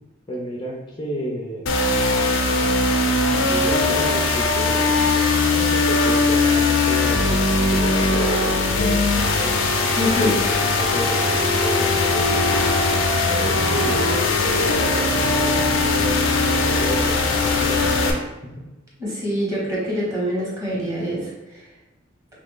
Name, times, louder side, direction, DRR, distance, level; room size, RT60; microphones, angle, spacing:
voice 1, 0.3-1.6 3.4-4.9 5.2-9.6 9.9-12.6 13.3-18.5, equal, 25° left, -4 dB, 0.5 m, -31 dB
sound 1, 1.7-18.1, left 3 dB, 70° left, 0.5 m, -20 dB
voice 2, 10.0-10.4 19.0-21.3, equal, 15° right, -6 dB, 1.2 m, -24 dB
3.2 x 2.4 x 3.6 m, 1.0 s
head